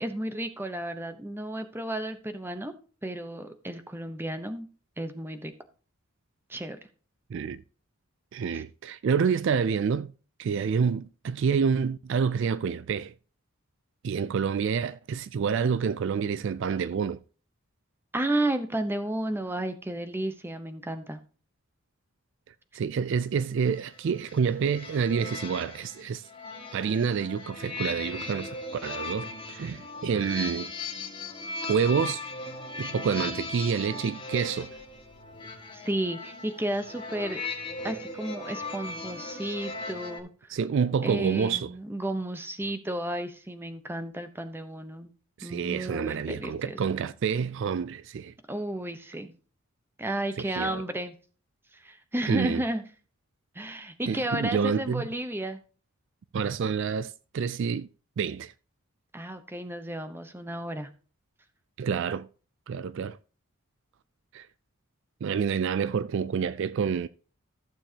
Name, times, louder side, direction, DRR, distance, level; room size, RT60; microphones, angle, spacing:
voice 1, 0.0-2.7 3.0-4.7 5.0-5.5 6.5-6.8 8.5-8.6 18.1-21.2 35.7-37.4 37.8-40.3 41.0-45.1 45.4-46.8 48.5-49.3 50.0-51.1 51.7-52.8 53.5-55.6 59.1-60.9, right 1 dB, 10° right, 0.8 m, -32 dB
voice 2, 7.3-7.6 8.3-10.1 10.4-13.1 14.0-17.2 22.7-26.2 26.7-28.6 28.8-30.7 31.7-32.2 32.8-34.7 40.5-41.7 45.4-48.3 50.4-50.8 52.3-52.6 54.1-55.1 56.3-57.9 58.2-58.5 61.8-62.3 62.7-63.2 64.3-64.5 65.2-67.1, right 6 dB, 55° right, 0.3 m, -28 dB
sound 1, 23.6-40.2, left 3 dB, 25° left, 1.9 m, -38 dB
14.5 x 7.1 x 2.8 m
head